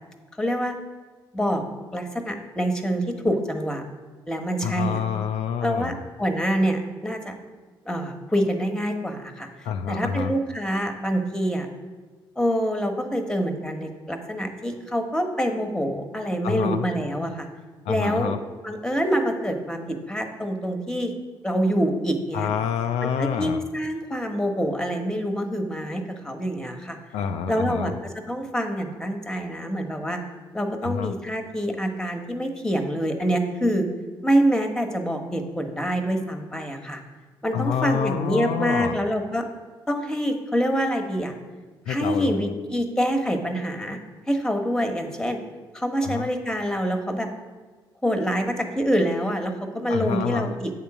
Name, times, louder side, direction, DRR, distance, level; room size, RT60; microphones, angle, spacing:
voice 1, 0.4-0.8 1.3-1.6 1.9-3.8 4.3-5.0 5.6-7.3 7.8-9.5 9.9-11.7 12.4-17.5 17.9-18.3 18.6-21.1 21.4-22.5 23.0-27.0 27.5-27.9 28.3-30.2 30.5-33.9 34.2-37.0 37.4-39.4 39.9-41.3 41.9-44.0 44.3-45.4 45.7-47.3 48.0-50.7, equal, 5° left, 5 dB, 1.2 m, -26 dB
voice 2, 4.6-6.0 9.6-10.4 16.4-16.9 17.9-18.4 22.3-23.6 27.1-28.0 30.8-31.1 37.5-39.0 41.9-42.5 46.0-46.3 49.9-50.5, left 8 dB, 70° left, 7 dB, 0.4 m, -27 dB
8.1 x 3.8 x 5.9 m, 1.4 s
hypercardioid pair, 45°, 12 cm